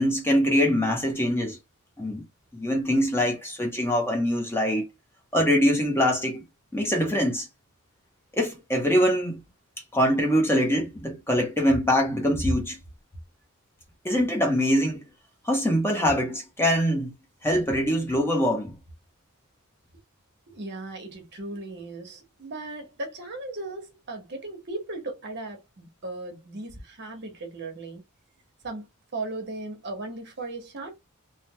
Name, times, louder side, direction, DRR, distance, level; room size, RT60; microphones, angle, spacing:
voice 1, 0.0-1.6 2.0-2.3 2.5-4.8 5.3-6.4 6.7-7.5 8.3-9.4 9.9-12.8 14.0-15.0 15.4-17.1 17.4-18.8, equal, 10° left, 0.7 m, -23 dB
voice 2, 20.5-28.0 28.6-31.0, right 2 dB, 50° right, 1.0 m, -37 dB
3.2 x 2.0 x 2.8 m
head